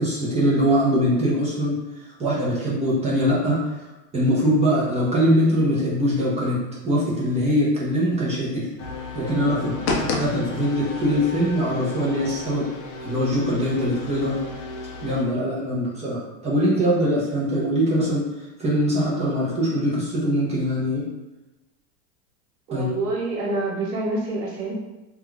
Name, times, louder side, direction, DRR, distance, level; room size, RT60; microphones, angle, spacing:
voice 1, 0.0-1.8 2.0-3.7 4.1-8.7 9.1-12.7 13.0-14.4 15.0-18.3 18.6-21.0 22.7-22.9, equal, 15° right, -6 dB, 0.5 m, -22 dB
sound 1, 8.8-15.2, left 3 dB, 40° left, 0.5 m, -32 dB
voice 2, 22.7-24.7, right 2 dB, 75° right, -2 dB, 1.2 m, -27 dB
2.4 x 2.2 x 3.0 m, 1.1 s
supercardioid pair, 130°, 47 cm